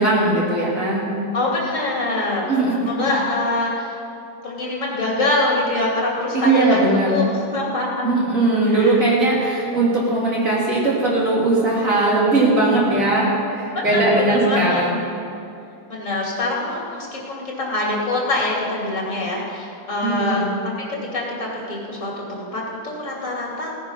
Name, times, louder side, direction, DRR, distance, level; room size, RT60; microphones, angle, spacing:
voice 1, 0.0-1.2 2.5-3.1 6.3-7.2 8.0-15.0 20.0-20.5, right 2 dB, 55° right, -6 dB, 3.3 m, -19 dB
voice 2, 1.3-2.5 2.9-4.0 4.4-6.8 7.1-8.1 8.7-8.9 13.7-14.8 15.9-20.4 21.1-23.7, left 2 dB, 50° left, -3 dB, 3.3 m, -24 dB
17.5 x 9.7 x 5.7 m, 2.6 s
omnidirectional pair, 1.7 m